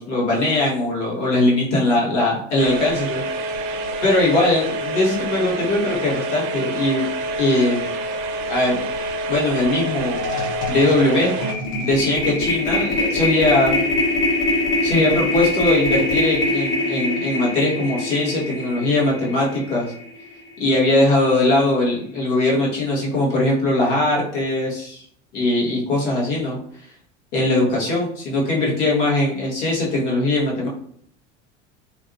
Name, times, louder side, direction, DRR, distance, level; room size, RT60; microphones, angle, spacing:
voice 1, 0.0-3.2 4.0-7.0 7.4-7.9 8.5-8.8 9.3-10.2 10.7-11.3 11.8-13.8 14.8-19.9 20.6-25.0 25.3-26.6 27.3-30.7, left 2 dB, 70° left, -4 dB, 1.3 m, -20 dB
sound 1, 2.6-11.5, right 1 dB, 50° right, 0.4 m, -27 dB
sound 2, 9.7-9.8 10.1-20.4, left 2 dB, 35° left, 0.7 m, -23 dB
2.7 x 2.3 x 2.5 m, 0.63 s
hypercardioid pair, 75°, 36 cm